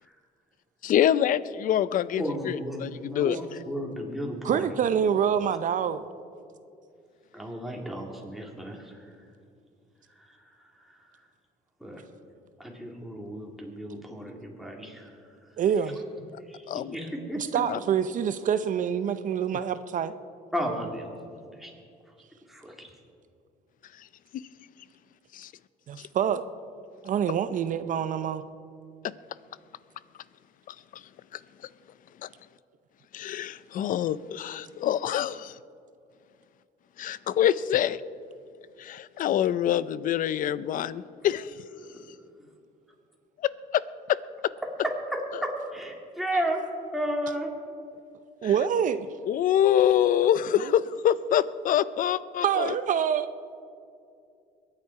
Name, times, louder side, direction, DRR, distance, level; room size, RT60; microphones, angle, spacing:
voice 1, 0.8-3.4 16.7-17.0 17.7-17.8 25.3-25.5 30.7-30.8 32.2-32.3 33.1-35.5 37.0-38.0 38.8-41.5 43.7-43.8 49.3-52.7, left 10 dB, 55° left, 18 dB, 0.5 m, -25 dB
voice 2, 2.2-4.8 7.3-9.1 10.2-10.4 10.8-11.0 11.8-12.0 12.6-15.2 16.5-17.6 20.5-21.1 21.6-21.7 22.5-22.9 41.8-42.1 45.1-46.6 46.9-47.5, equal, ahead, -1 dB, 2.7 m, -33 dB
voice 3, 4.4-6.1 15.6-16.0 17.4-20.2 25.9-26.4 27.0-28.4 48.4-49.1 50.6-50.7 52.4-53.3, right 8 dB, 50° right, 12 dB, 0.6 m, -26 dB
22.5 x 9.9 x 4.7 m, 2.4 s
cardioid pair, 110°, 17 cm